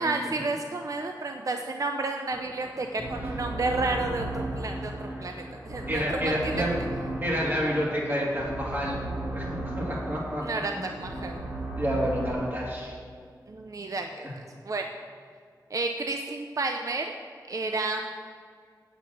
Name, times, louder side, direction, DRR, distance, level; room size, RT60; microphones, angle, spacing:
voice 1, 0.0-6.7 10.4-11.4 13.5-14.3 14.7-14.9 15.7-17.1 17.5-18.1, right 3 dB, 50° right, 4 dB, 0.6 m, -31 dB
sound 1, 2.3-12.3, right 1 dB, 15° right, 2.8 m, -35 dB
voice 2, 5.9-6.8 7.2-9.0 9.3-10.4 10.7-10.8 11.4-11.5 11.8-13.0 14.2-14.3, equal, 30° right, -4 dB, 2.9 m, -29 dB
8.5 x 8.2 x 6.6 m, 2.1 s
wide cardioid pair, 95°, 7 cm